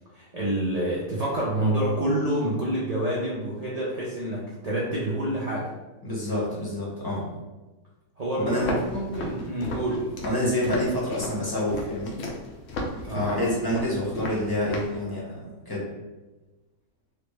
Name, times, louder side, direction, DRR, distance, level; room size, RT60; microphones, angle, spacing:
voice 1, 0.1-5.7 8.2-10.1 13.1-13.5, right 1 dB, 70° right, -6 dB, 0.3 m, -28 dB
voice 2, 6.0-7.3 8.5-8.7 10.2-12.2 13.1-15.9, left 1 dB, 20° left, -6 dB, 0.8 m, -27 dB
Walk footsteps, 8.6-15.0, left 2 dB, 65° left, 0.9 m, -34 dB
4.2 x 2.0 x 3.2 m, 1.1 s
omnidirectional pair, 1.6 m